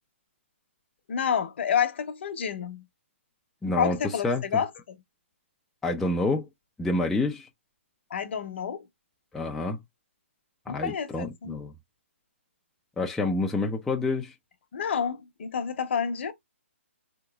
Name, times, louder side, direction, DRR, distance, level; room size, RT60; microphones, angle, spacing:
voice 1, 1.1-2.9 3.8-5.0 8.1-8.8 10.7-11.7 14.7-16.3, left 7 dB, 55° left, 0.8 m, -29 dB
voice 2, 3.6-4.0 4.2-4.4 5.8-6.5 6.8-7.5 9.3-9.8 10.7-11.7 13.0-14.3, left 2 dB, 5° left, 0.3 m, -28 dB
3.5 x 2.9 x 2.3 m
hypercardioid pair, 150°, 7 cm